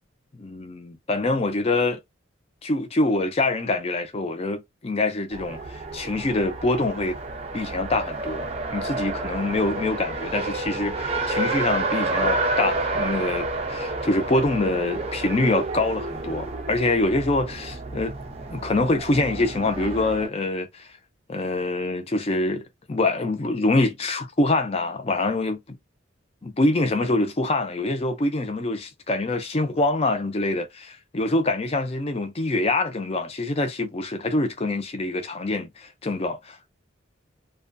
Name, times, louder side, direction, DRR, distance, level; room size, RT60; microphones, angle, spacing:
voice 1, 0.4-2.0 2.6-5.6 5.9-7.1 7.5-8.5 8.7-18.1 18.5-20.8 21.3-25.8 26.4-36.7, left 2 dB, 30° left, 0.4 m, -25 dB
Race car auto racing, 5.3-20.3, right 2 dB, 30° right, 0.4 m, -30 dB
2.4 x 2.1 x 2.4 m
head